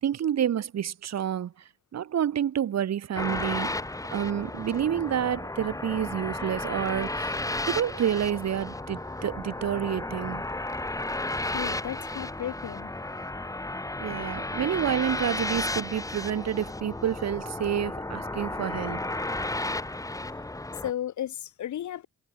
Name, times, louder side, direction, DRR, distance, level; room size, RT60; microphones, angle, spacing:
voice 1, 0.0-1.5 1.9-3.8 4.1-10.4 14.0-19.0, right 9 dB, 60° right, 3.3 m, -29 dB
sound 1, 3.1-20.9, left 2 dB, 10° left, 2.5 m, -33 dB
voice 2, 11.5-12.9 20.8-22.1, left 11 dB, 70° left, 7.3 m, -34 dB
cardioid pair, 90°, 30 cm